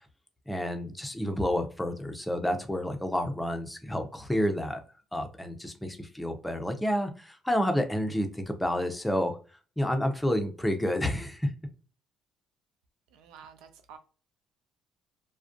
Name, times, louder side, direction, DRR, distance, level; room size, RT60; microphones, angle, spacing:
voice 1, 0.5-4.8 5.1-9.4 9.8-11.5, equal, 10° left, 0.6 m, -29 dB
voice 2, 13.1-14.0, right 7 dB, 80° right, 0.4 m, -50 dB
2.3 x 2.1 x 2.5 m
hypercardioid pair, 55°, 0 cm